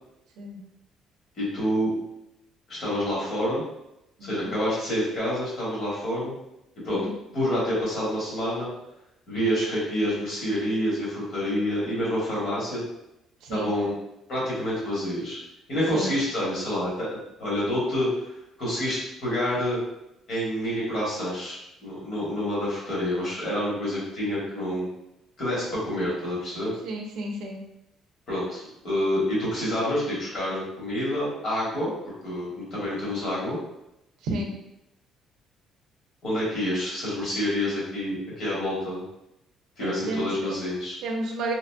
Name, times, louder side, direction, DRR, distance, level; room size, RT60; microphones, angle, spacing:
voice 1, 1.4-1.9 2.7-3.6 4.2-6.3 6.8-7.1 7.3-8.7 9.3-12.8 13.5-13.9 14.3-15.4 15.7-17.1 17.4-18.3 18.6-19.8 20.3-24.9 25.4-26.7 28.3-31.9 32.2-33.6 36.2-39.0 39.8-41.0, equal, 45° left, -6 dB, 1.2 m, -27 dB
voice 2, 4.2-4.5 6.9-7.1 13.4-13.7 15.9-16.1 26.8-27.6 34.2-34.5 39.8-40.5 41.0-41.5, right 2 dB, 80° right, 1 dB, 0.5 m, -32 dB
2.9 x 2.5 x 2.2 m, 0.87 s
cardioid pair, 170°, 0 cm